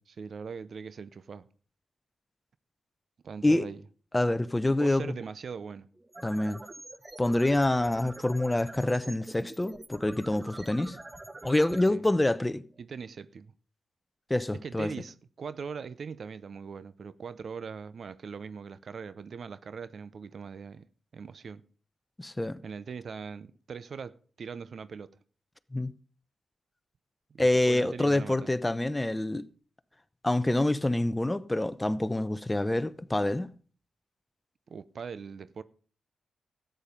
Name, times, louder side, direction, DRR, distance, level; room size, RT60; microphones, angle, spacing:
voice 1, 0.1-1.5 3.2-3.8 4.8-5.9 11.7-12.0 12.8-13.5 14.6-20.9 21.1-21.6 22.6-25.1 27.3-28.5 34.7-35.6, right 6 dB, 65° right, 0.7 m, -41 dB
voice 2, 4.1-5.1 6.2-6.6 7.2-11.0 11.4-12.6 14.3-14.9 22.2-22.6 25.7-25.9 27.4-29.4 30.2-33.5, left 1 dB, 15° left, 0.8 m, -26 dB
sound 1, 6.0-13.1, right 2 dB, 25° right, 1.1 m, -46 dB
13.0 x 9.1 x 5.3 m
cardioid pair, 55°, 0 cm